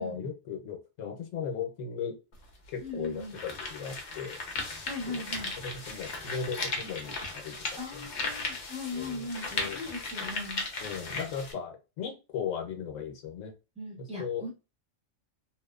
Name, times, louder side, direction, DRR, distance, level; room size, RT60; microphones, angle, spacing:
voice 1, 0.0-2.2 2.7-4.4 5.1-5.2 5.6-8.1 8.9-9.3 9.5-9.8 10.8-13.5 14.0-14.4, left 7 dB, 85° left, 5 dB, 1.0 m, -37 dB
sound 1, 2.3-2.4 3.0-11.5, left 3 dB, 50° left, 0.6 m, -37 dB
voice 2, 2.8-3.4 4.8-5.5 7.8-10.6 13.8-14.5, left 2 dB, 5° right, -3 dB, 0.8 m, -39 dB
2.9 x 2.0 x 2.3 m, 0.29 s
omnidirectional pair, 1.3 m